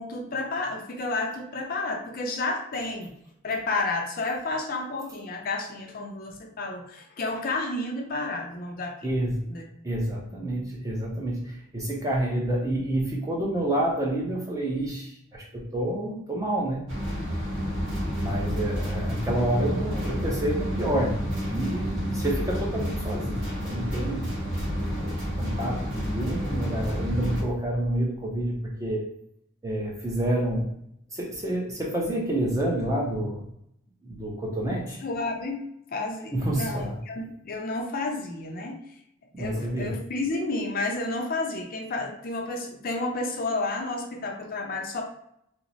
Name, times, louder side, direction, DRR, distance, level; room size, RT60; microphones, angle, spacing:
voice 1, 0.0-3.1 3.4-9.1 9.5-9.6 35.0-35.6 35.9-38.8 39.4-45.0, left 2 dB, 45° left, 2 dB, 0.4 m, -31 dB
voice 2, 9.0-9.5 9.8-16.9 18.2-24.3 25.0-29.0 29.6-30.8 31.1-33.4 34.0-35.0 36.3-37.0 39.3-39.9, right 1 dB, 15° right, -2 dB, 0.6 m, -28 dB
sound 1, 16.9-27.4, equal, 65° right, 1.3 m, -30 dB
3.0 x 2.0 x 3.9 m, 0.74 s
head